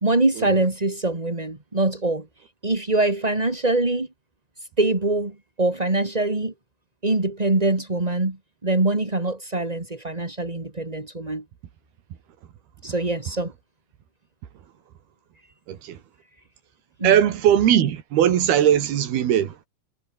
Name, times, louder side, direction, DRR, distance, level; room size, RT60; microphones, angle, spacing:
voice 1, 0.0-2.3 2.6-4.1 4.8-6.5 7.0-8.4 8.6-11.4 12.8-13.5 17.0-17.2, right 2 dB, 15° right, 2.0 m, -23 dB
voice 2, 15.7-16.0 17.0-19.5, right 10 dB, 75° right, 4.0 m, -19 dB
omnidirectional pair, 4.5 m